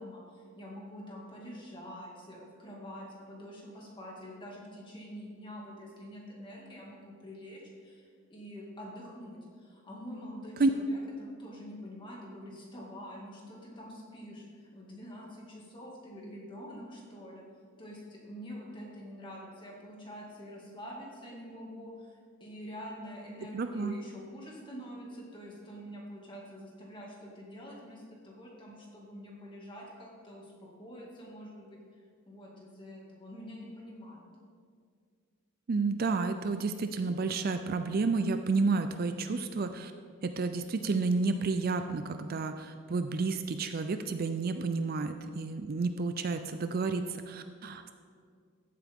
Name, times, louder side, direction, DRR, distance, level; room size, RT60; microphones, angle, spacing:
voice 1, 0.0-17.4 17.8-32.0 32.3-34.3, equal, 20° left, -3 dB, 2.1 m, -46 dB
voice 2, 23.5-24.0 35.7-39.9 40.2-47.9, right 4 dB, 45° right, 8 dB, 0.4 m, -30 dB
14.0 x 8.5 x 3.6 m, 2.1 s
head